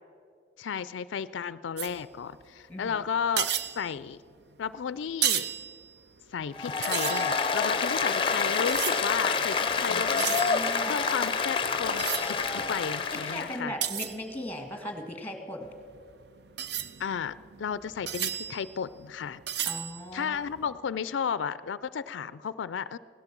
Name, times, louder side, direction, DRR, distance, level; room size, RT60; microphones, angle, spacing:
voice 1, 0.6-4.2 4.6-5.5 6.3-13.8 17.0-19.4 20.1-23.0, left 7 dB, 90° left, 16 dB, 0.4 m, -33 dB
sound 1, 1.8-2.5 2.8-3.0 3.2-4.7 5.1-6.5 6.8-9.5 9.8-14.8 15.6-20.7, right 10 dB, 65° right, 0.6 m, -35 dB
Applause, 6.5-13.6, left 5 dB, 30° left, 0.7 m, -28 dB
voice 2, 9.9-10.9 13.1-15.7 19.6-20.4, left 1 dB, 10° left, 4 dB, 1.7 m, -38 dB
17.0 x 11.5 x 7.4 m, 2.3 s
head